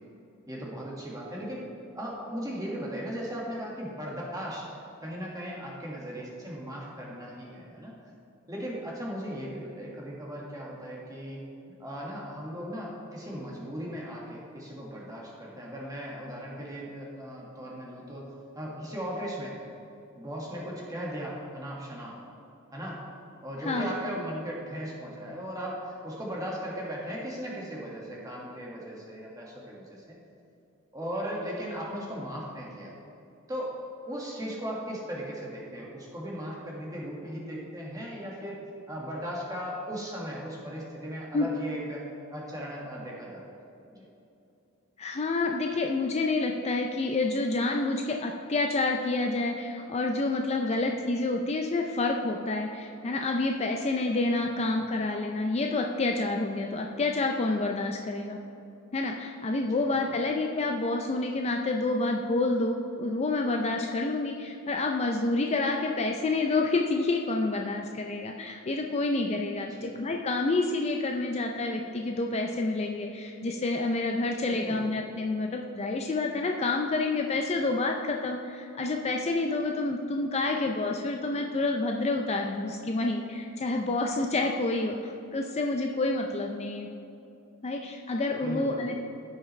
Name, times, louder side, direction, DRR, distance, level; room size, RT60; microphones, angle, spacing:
voice 1, 0.5-1.7 1.9-7.9 8.5-18.3 18.5-19.6 20.2-22.2 22.7-23.0 23.4-30.1 30.9-32.9 33.5-33.7 34.0-38.6 38.9-42.0 42.3-43.5 43.9-44.0 50.7-50.8 54.3-54.7 59.7-60.1 69.7-69.9 74.5-74.9 88.3-89.0, equal, 15° right, -4 dB, 1.7 m, -37 dB
voice 2, 45.0-58.4 58.9-86.9 87.6-89.0, left 2 dB, 30° left, 2 dB, 0.4 m, -28 dB
14.5 x 5.7 x 3.2 m, 2.7 s
head